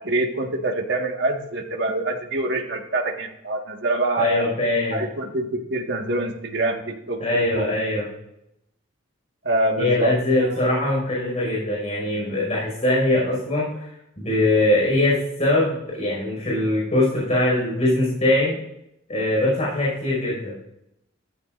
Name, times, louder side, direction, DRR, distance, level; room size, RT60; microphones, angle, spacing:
voice 1, 0.0-4.4 4.9-7.7 9.4-10.6, right 2 dB, 60° right, 2 dB, 1.7 m, -25 dB
voice 2, 4.2-5.0 7.2-8.1 9.8-13.9 14.2-18.6 19.1-20.5, left 1 dB, 35° left, -5 dB, 5.6 m, -22 dB
15.0 x 13.5 x 2.6 m, 0.81 s
head